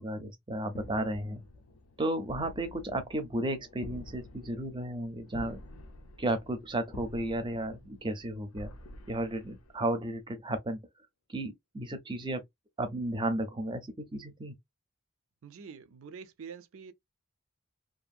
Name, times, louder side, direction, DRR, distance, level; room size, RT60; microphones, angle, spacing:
voice 1, 0.0-1.4 2.0-5.6 6.2-8.7 9.1-10.8 11.3-12.4 12.8-14.6, right 1 dB, 20° right, 0.6 m, -33 dB
sound 1, 0.7-10.2, left 2 dB, 75° left, 0.5 m, -49 dB
voice 2, 15.4-16.9, right 6 dB, 70° right, 0.5 m, -46 dB
2.6 x 2.5 x 2.4 m
head